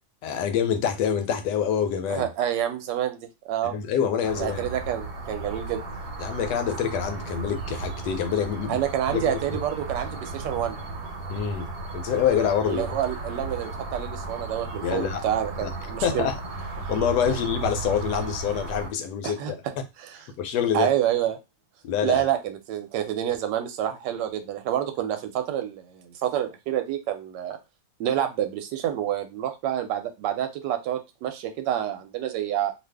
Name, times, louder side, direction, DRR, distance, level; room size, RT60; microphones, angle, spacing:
voice 1, 0.2-2.3 3.6-4.7 6.2-8.8 9.1-9.4 11.3-12.9 14.8-15.2 15.6-15.7 16.0-16.4 16.9-19.6 20.4-20.9 21.8-22.3, left 8 dB, 80° left, 1.2 m, -26 dB
voice 2, 2.1-3.8 4.4-5.8 8.7-10.8 12.7-16.3 19.2-19.5 20.0-20.2 20.7-21.4 22.0-27.6 28.0-32.7, right 11 dB, 90° right, 1.2 m, -28 dB
sound 1, 4.2-18.9, right 3 dB, 70° right, 1.2 m, -35 dB
2.7 x 2.5 x 3.3 m
omnidirectional pair, 1.8 m